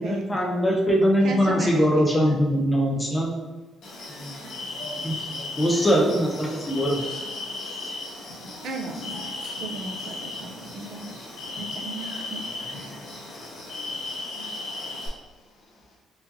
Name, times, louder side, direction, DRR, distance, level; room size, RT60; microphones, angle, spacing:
voice 1, 0.0-3.3 5.0-5.2 5.6-7.0, equal, 10° left, -1 dB, 0.6 m, -22 dB
voice 2, 1.2-2.4 8.6-9.3 9.6-11.1 11.6-12.4, right 2 dB, 65° right, 1 dB, 0.5 m, -36 dB
sound 1, 3.8-15.1, left 2 dB, 80° left, 1.2 m, -36 dB
voice 3, 4.1-5.9 9.6-9.7 15.7-15.8, equal, 60° left, -3 dB, 0.9 m, -44 dB
4.6 x 2.7 x 2.6 m, 1.2 s
cardioid pair, 170°, 0 cm